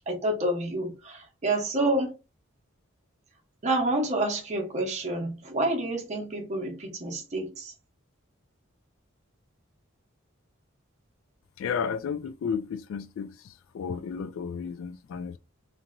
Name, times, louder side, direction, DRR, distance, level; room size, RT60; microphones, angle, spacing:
voice 1, 0.1-2.1 3.6-7.7, right 1 dB, 35° right, 0.7 m, -28 dB
voice 2, 11.6-15.4, left 6 dB, 70° left, 0.3 m, -33 dB
2.9 x 2.6 x 2.4 m
head